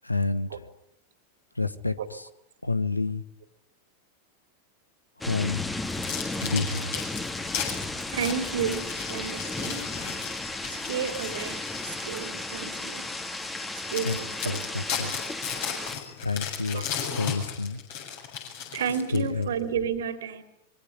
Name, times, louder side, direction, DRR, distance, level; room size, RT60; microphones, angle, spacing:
voice 1, 0.0-0.5 1.6-2.2 2.6-3.2 5.2-5.6 6.4-6.9 14.0-14.2 14.4-15.2 16.2-16.9 17.1-17.8 19.1-19.5, left 3 dB, 85° left, 1.4 m, -28 dB
sound 1, 5.2-16.0, left 2 dB, 10° left, 2.3 m, -34 dB
sound 2, 5.8-12.3 12.8-13.0 13.5-13.6 13.9-19.4, left 8 dB, 50° left, 7.7 m, -36 dB
voice 2, 8.1-9.9 10.7-13.0 13.9-14.7 16.7-17.3 18.7-20.4, right 7 dB, 60° right, 3.3 m, -32 dB
sound 3, 8.7-16.1, left 6 dB, 70° left, 7.4 m, -46 dB
25.0 x 23.5 x 9.7 m
figure-of-eight pair, 90°, 0 cm